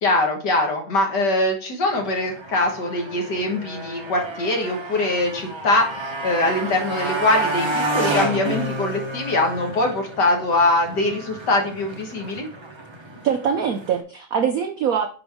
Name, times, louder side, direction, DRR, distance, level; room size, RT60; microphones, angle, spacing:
voice 1, 0.0-12.5, left 2 dB, 55° left, 2 dB, 2.0 m, -22 dB
Motorcycle, 1.9-14.0, right 2 dB, 30° right, 0.5 m, -30 dB
voice 2, 13.2-15.1, right 7 dB, 75° right, 7 dB, 0.8 m, -23 dB
9.1 x 5.2 x 3.6 m, 0.40 s
omnidirectional pair, 2.3 m